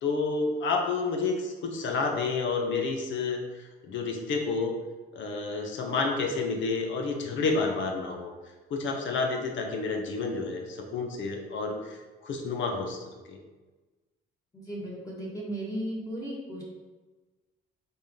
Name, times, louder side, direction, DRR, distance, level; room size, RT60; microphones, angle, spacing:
voice 1, 0.0-3.4 3.8-4.8 5.1-8.3 8.7-12.0 12.2-13.4, left 4 dB, 70° left, 2 dB, 0.8 m, -30 dB
voice 2, 14.5-16.6, right 1 dB, 15° left, -5 dB, 1.4 m, -35 dB
4.3 x 3.5 x 3.6 m, 1.3 s
cardioid pair, 90°, 20 cm